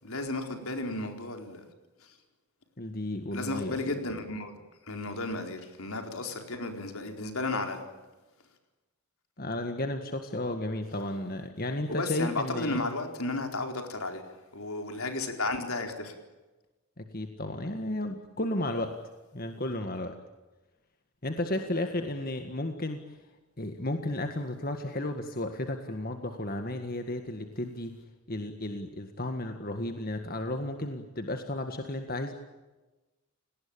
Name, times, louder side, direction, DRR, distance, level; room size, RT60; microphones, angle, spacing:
voice 1, 0.0-1.6 2.0-2.1 3.3-4.5 4.9-7.9 11.9-16.1, left 2 dB, 75° left, 5 dB, 4.4 m, -33 dB
voice 2, 2.8-3.8 9.4-12.8 17.0-19.0 19.3-20.2 21.2-23.2 23.6-28.0 28.3-32.3, left 1 dB, 40° left, 6 dB, 1.8 m, -33 dB
29.5 x 19.0 x 8.9 m, 1.1 s
head